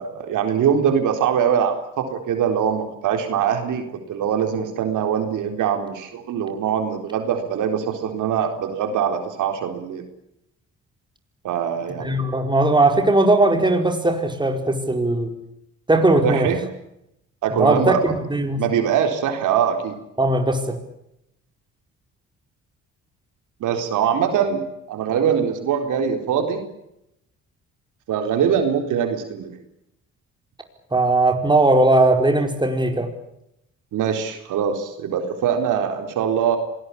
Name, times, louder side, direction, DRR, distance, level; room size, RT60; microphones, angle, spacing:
voice 1, 0.0-10.0 11.4-12.3 16.2-16.6 17.4-18.1 18.6-20.0 23.6-24.6 24.9-26.6 28.1-29.5 33.9-36.6, right 8 dB, 80° right, 6 dB, 4.1 m, -22 dB
voice 2, 12.0-15.3 15.9-16.5 17.5-18.6 20.2-20.8 30.9-33.1, right 2 dB, 15° right, 5 dB, 4.9 m, -18 dB
26.5 x 19.5 x 8.6 m, 0.81 s
cardioid pair, 90°, 30 cm